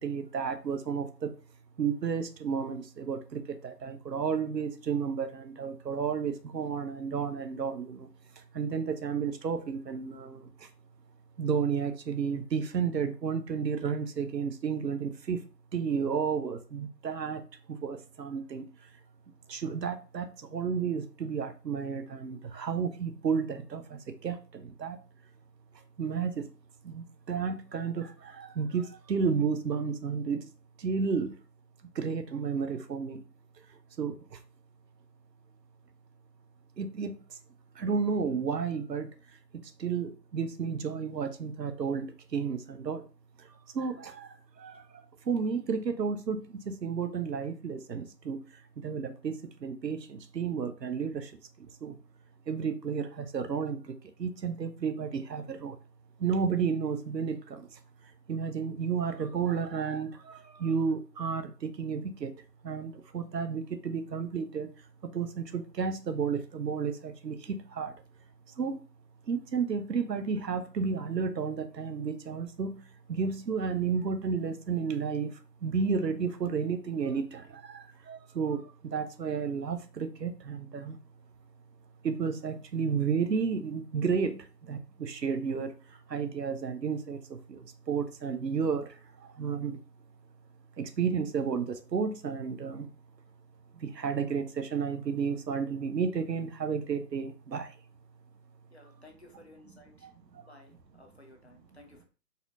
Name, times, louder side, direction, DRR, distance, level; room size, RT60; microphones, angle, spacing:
voice 1, 0.0-1.3 1.8-8.1 8.4-10.7 11.4-15.4 15.7-17.4 17.7-18.7 19.5-25.0 26.0-26.5 26.8-30.5 30.8-31.4 31.9-33.2 34.0-34.4 36.8-37.4 37.8-39.1 39.5-43.1 43.4-52.0 52.5-55.8 56.2-57.8 58.3-62.3 62.6-64.7 65.0-68.0 68.6-68.8 69.3-72.8 73.1-81.0 82.0-89.8 90.8-92.9 93.8-97.8 100.0-100.4, right 6 dB, 80° right, 0.7 m, -32 dB
voice 2, 98.7-100.1 100.5-102.1, left 2 dB, 45° left, 0.5 m, -56 dB
4.1 x 2.5 x 2.6 m
figure-of-eight pair, 150°, 49 cm